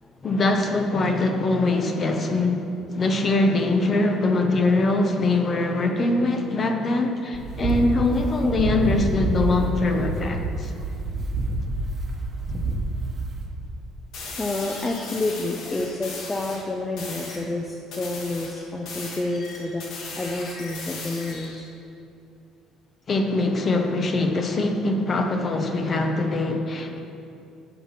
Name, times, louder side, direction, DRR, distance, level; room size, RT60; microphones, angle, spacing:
voice 1, 0.2-2.7 2.9-10.7 23.1-27.0, left 2 dB, 35° left, 5 dB, 1.0 m, -23 dB
sound 1, 7.3-13.5, right 2 dB, 30° right, 1.2 m, -27 dB
sound 2, 14.1-16.6 17.0-17.4 17.9-21.6, left 3 dB, 70° left, 2.0 m, -37 dB
voice 2, 14.4-21.7, left 2 dB, 15° left, 1 dB, 0.6 m, -29 dB
9.2 x 5.9 x 5.8 m, 2.7 s
cardioid pair, 120°, 0 cm